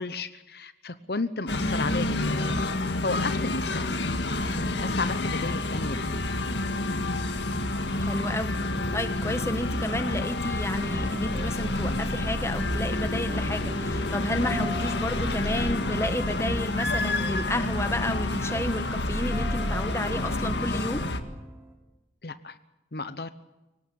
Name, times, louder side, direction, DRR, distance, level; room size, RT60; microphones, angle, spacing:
voice 1, 0.0-4.0 4.7-6.1 22.2-22.6 22.9-23.3, left 3 dB, 60° left, 12 dB, 0.9 m, -33 dB
sound 1, 1.5-21.2, left 2 dB, 80° left, 1.9 m, -28 dB
voice 2, 8.0-8.6 8.9-21.1, left 1 dB, 15° left, 9 dB, 1.4 m, -31 dB
sound 2, 10.7-21.7, equal, 15° right, 3.6 m, -44 dB
24.0 x 18.5 x 8.7 m, 1.0 s
head